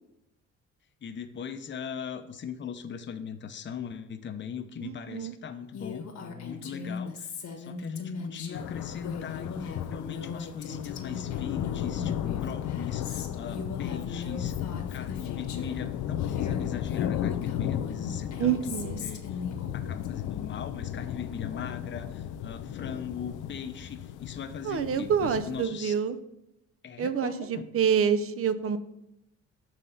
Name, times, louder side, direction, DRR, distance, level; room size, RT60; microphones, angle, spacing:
voice 1, 1.0-14.5 14.9-18.6 19.0-19.4 19.7-25.9 26.8-27.7, left 7 dB, 40° left, 8 dB, 0.7 m, -39 dB
voice 2, 4.8-5.3 18.4-19.0 24.6-26.2 27.0-28.8, right 7 dB, 50° right, 13 dB, 0.6 m, -27 dB
Female speech woman speaking, 5.7-15.8 16.2-20.1, left 5 dB, 65° left, 1.3 m, -39 dB
sound 1, 8.5-25.7, left 10 dB, 90° left, 0.5 m, -35 dB
7.3 x 3.7 x 5.5 m, 0.85 s
cardioid pair, 90°, 30 cm